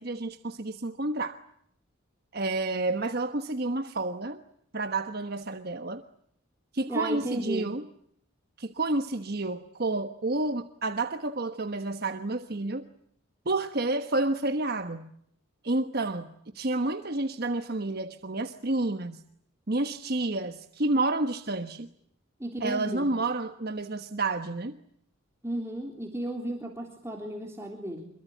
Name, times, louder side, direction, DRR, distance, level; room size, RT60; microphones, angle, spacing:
voice 1, 0.0-1.4 2.3-4.4 4.7-6.0 6.7-7.8 8.6-12.8 13.4-15.1 15.6-19.2 19.7-21.9 22.6-24.8, right 2 dB, 50° right, 1.2 m, -30 dB
voice 2, 6.9-7.7 22.4-23.1 25.4-28.0, right 1 dB, 15° right, 3.5 m, -34 dB
26.5 x 23.0 x 9.3 m
head